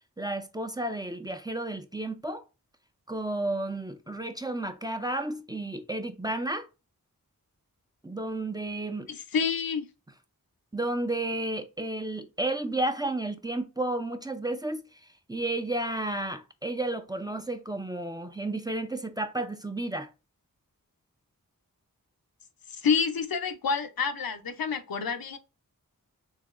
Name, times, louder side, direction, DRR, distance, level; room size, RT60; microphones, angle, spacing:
voice 1, 0.2-2.4 3.1-6.7 8.0-9.1 10.7-14.9 15.3-20.1, right 2 dB, 10° right, 0.5 m, -32 dB
voice 2, 9.1-9.9 22.8-25.4, left 6 dB, 80° left, 0.6 m, -28 dB
4.1 x 2.8 x 2.4 m
wide cardioid pair, 40°, 35 cm